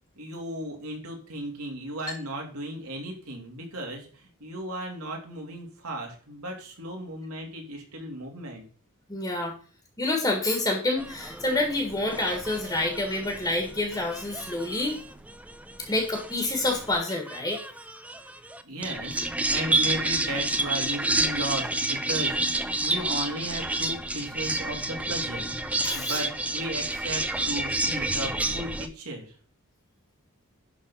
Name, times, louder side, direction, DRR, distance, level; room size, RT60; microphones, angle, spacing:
voice 1, 0.2-8.6 18.6-29.3, right 1 dB, 90° right, 1 dB, 2.8 m, -35 dB
voice 2, 9.1-9.5 10.0-15.0 15.9-17.6 25.8-26.2, left 2 dB, 20° left, 2 dB, 1.7 m, -28 dB
sound 1, 11.0-28.9, right 2 dB, 5° right, 0.5 m, -30 dB
11.5 x 4.1 x 5.6 m, 0.42 s
head